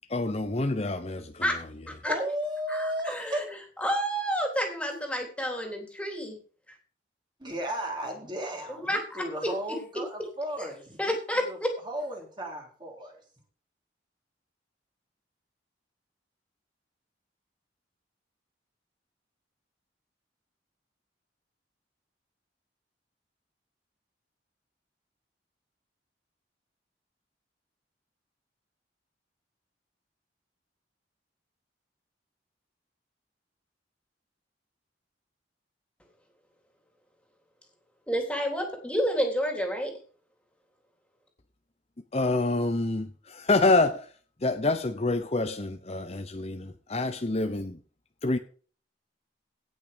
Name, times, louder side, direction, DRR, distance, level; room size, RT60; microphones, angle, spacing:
voice 1, 0.1-1.7 42.1-44.1 44.4-47.8 48.2-48.4, left 2 dB, 35° left, 0.9 m, -27 dB
voice 2, 2.0-3.4 7.4-11.6 11.8-13.2, equal, 25° right, 3.6 m, -34 dB
voice 3, 2.7-3.4 3.8-6.4 8.7-9.2 10.6-10.7 11.0-11.7 38.1-39.9, equal, 5° left, 3.4 m, -29 dB
17.5 x 6.4 x 5.2 m
head